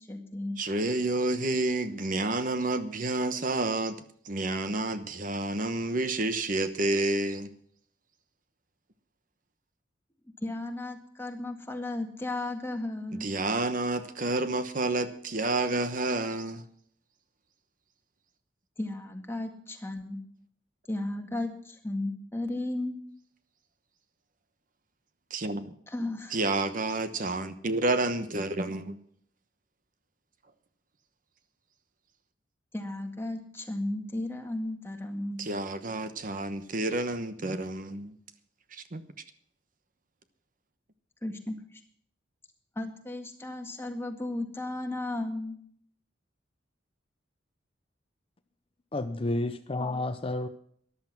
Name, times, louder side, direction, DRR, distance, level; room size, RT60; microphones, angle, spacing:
voice 1, 0.0-0.6 10.4-13.3 18.8-20.2 20.9-22.9 25.9-26.4 32.7-35.4 41.2-41.8 42.8-45.6, left 2 dB, 15° left, 1.9 m, -34 dB
voice 2, 0.6-7.5 13.2-16.6 25.3-25.8 26.3-28.9 35.4-38.1 38.7-39.0, right 2 dB, 50° right, 1.0 m, -29 dB
voice 3, 48.9-50.5, left 2 dB, 30° left, 0.6 m, -30 dB
14.0 x 11.5 x 5.9 m
head